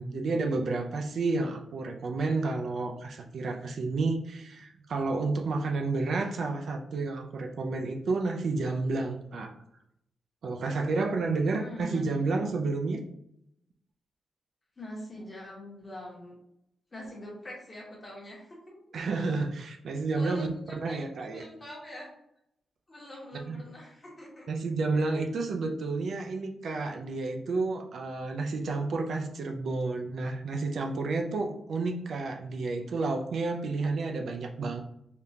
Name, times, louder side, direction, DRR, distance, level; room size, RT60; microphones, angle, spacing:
voice 1, 0.0-9.5 10.4-13.0 18.9-21.4 23.5-23.6 24.5-34.8, right 3 dB, 65° right, 3 dB, 0.4 m, -30 dB
voice 2, 11.5-12.1 14.8-16.3 16.9-19.0 20.1-20.9 21.2-22.1 22.9-24.5 24.9-25.2, equal, 25° left, -3 dB, 1.0 m, -44 dB
3.5 x 2.4 x 2.7 m, 0.78 s
wide cardioid pair, 160°, 0 cm